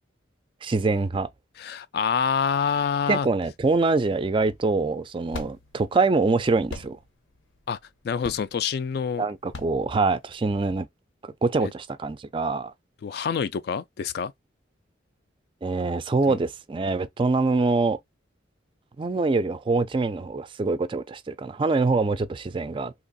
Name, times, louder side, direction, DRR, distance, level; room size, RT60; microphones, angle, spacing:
voice 1, 0.6-1.3 3.1-7.0 9.2-10.9 11.4-12.7 15.6-18.0 19.0-22.9, right 3 dB, 25° right, 0.3 m, -24 dB
voice 2, 1.6-3.3 7.7-7.8 8.0-9.2 11.6-11.7 13.0-14.3 16.3-16.4, left 6 dB, 55° left, 0.3 m, -26 dB
sound 1, 4.5-10.7, left 2 dB, 85° left, 0.8 m, -42 dB
2.9 x 2.4 x 3.9 m
head